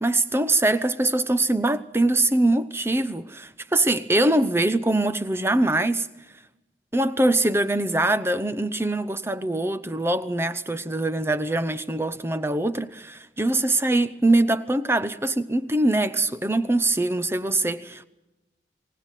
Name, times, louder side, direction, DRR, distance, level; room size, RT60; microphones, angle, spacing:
voice 1, 0.0-6.1 6.9-18.1, right 2 dB, 15° right, 0.8 m, -23 dB
24.0 x 17.5 x 9.1 m
head